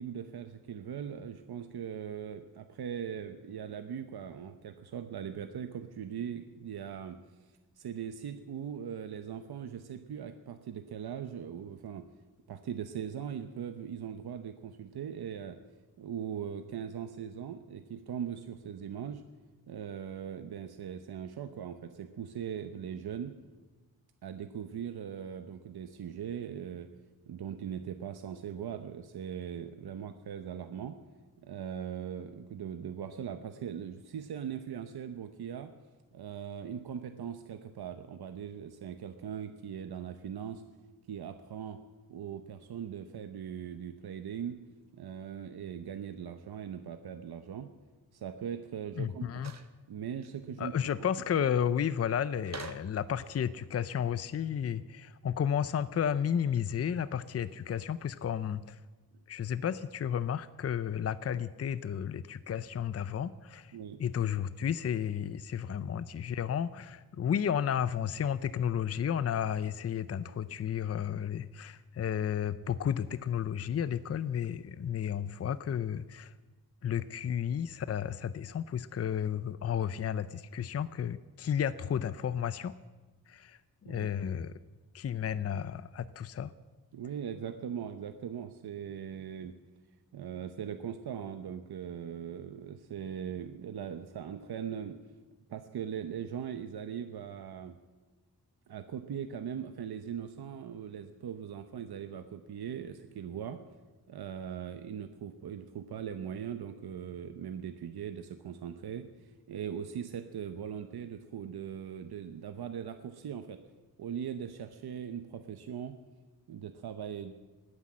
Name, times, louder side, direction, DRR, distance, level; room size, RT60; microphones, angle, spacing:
voice 1, 0.0-7.2 7.8-12.0 12.5-15.6 16.0-19.2 19.7-23.3 24.2-26.9 27.3-31.0 31.4-35.7 36.1-40.6 41.1-41.8 42.1-44.6 44.9-47.7 48.1-49.4 49.9-50.8 63.7-64.0 83.8-84.1 86.9-89.5 90.1-95.0 95.5-97.8 98.7-103.6 104.1-113.6 114.0-116.0 116.5-117.3, right 8 dB, 90° right, 8 dB, 0.9 m, -40 dB
voice 2, 49.0-49.5 50.6-58.8 59.3-63.7 64.0-76.3 76.8-82.8 83.3-84.5 84.9-86.5, left 8 dB, 40° left, 15 dB, 0.5 m, -32 dB
sound 1, 49.4-49.7 50.2-50.3 52.4-53.0, right 6 dB, 45° right, 1.0 m, -44 dB
19.5 x 9.8 x 7.5 m, 1.2 s
wide cardioid pair, 150°, 37 cm